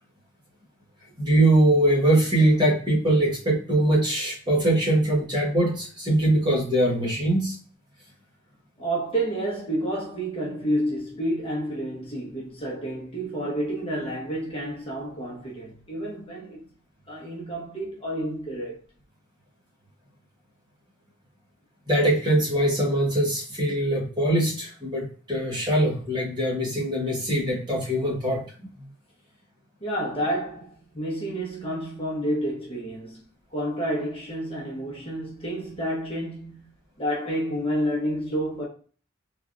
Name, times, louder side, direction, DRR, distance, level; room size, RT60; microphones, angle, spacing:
voice 1, 1.2-7.6 21.9-28.9, right 1 dB, 20° right, 1.0 m, -22 dB
voice 2, 8.8-16.6 17.1-18.8 29.8-33.2 33.5-36.7 37.0-38.7, right 1 dB, 25° left, 1.0 m, -29 dB
3.3 x 2.5 x 2.5 m
head